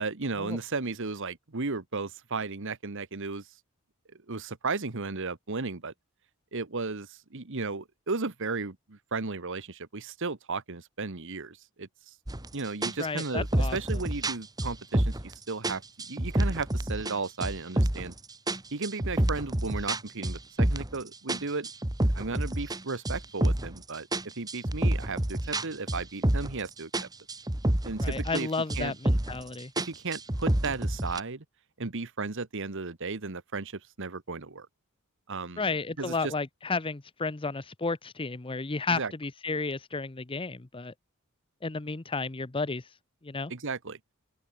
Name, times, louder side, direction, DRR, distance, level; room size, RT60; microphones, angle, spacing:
voice 1, 0.0-3.4 4.3-5.9 6.5-12.1 12.5-18.1 18.7-21.7 22.1-24.1 24.4-27.1 27.8-28.5 28.7-29.0 29.8-31.4 31.8-34.7 35.3-35.7 36.0-36.3 38.9-39.1 43.5-44.0, right 3 dB, 60° right, 1.4 m, -34 dB
sound 1, 12.3-12.5 12.8-15.3 15.6-17.1 17.4-18.1 18.5-21.0 21.3-23.8 24.1-26.7 26.9-28.4 28.7-29.4 29.8-31.2, right 1 dB, 20° right, 1.4 m, -28 dB
voice 2, 13.0-13.8 28.0-29.7 35.6-40.9 41.6-42.9 43.2-43.5, left 3 dB, 25° left, 0.8 m, -32 dB
open air
head